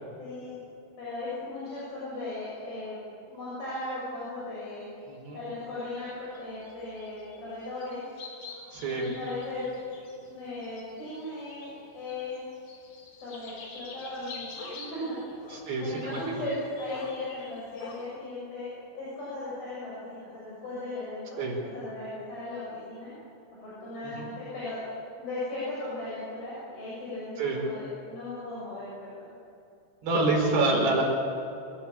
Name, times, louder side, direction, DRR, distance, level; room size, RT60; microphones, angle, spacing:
voice 1, 0.2-0.6 1.0-3.0 3.3-4.9 5.3-8.0 8.9-9.6 10.2-12.4 13.2-15.2 15.8-23.1 23.6-24.8 25.2-29.2, left 2 dB, 60° left, -8 dB, 8.6 m, -37 dB
voice 2, 5.1-5.4 8.7-9.1 15.5-16.2 21.4-21.5 24.0-24.3 27.4-27.6 30.0-31.0, right 2 dB, 80° right, -1 dB, 6.9 m, -27 dB
sound 1, 5.9-7.4 7.6-11.8 12.1-18.1, left 3 dB, 80° left, 5.4 m, -46 dB
26.5 x 16.0 x 8.6 m, 2.7 s
omnidirectional pair, 4.8 m